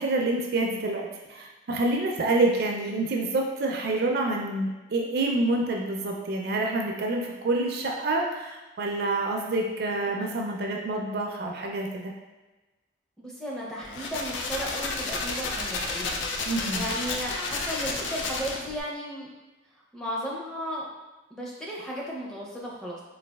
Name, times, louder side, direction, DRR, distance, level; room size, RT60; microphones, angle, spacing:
voice 1, 0.0-12.1 16.4-16.8, right 2 dB, 55° right, 1 dB, 0.4 m, -27 dB
voice 2, 13.2-16.2 16.7-19.3 19.9-20.9 21.3-23.0, equal, 5° left, -5 dB, 0.5 m, -35 dB
sound 1, 13.8-18.8, left 3 dB, 85° left, 0.4 m, -31 dB
3.9 x 2.3 x 2.2 m, 1.1 s
head